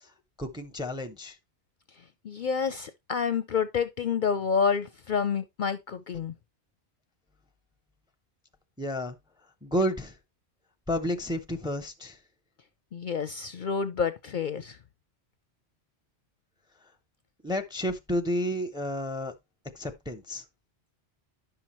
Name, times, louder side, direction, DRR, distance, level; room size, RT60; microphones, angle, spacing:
voice 1, 0.4-1.4 8.8-9.2 9.6-10.2 10.9-12.2 17.4-19.3 19.7-20.4, equal, 5° right, 0.6 m, -31 dB
voice 2, 2.2-6.3 12.9-14.8, left 6 dB, 55° left, 0.6 m, -28 dB
10.5 x 5.8 x 3.0 m
omnidirectional pair, 1.1 m